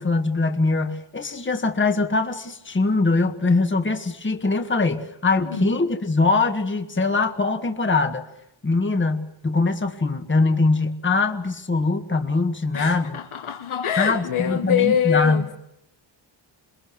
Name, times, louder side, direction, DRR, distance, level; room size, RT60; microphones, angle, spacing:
voice 1, 0.0-8.3 8.6-13.2 14.0-15.4, left 3 dB, 25° left, 1.7 m, -22 dB
voice 2, 12.7-15.5, left 9 dB, 85° left, 1.7 m, -24 dB
28.0 x 21.5 x 7.7 m
wide cardioid pair, 120°, 48 cm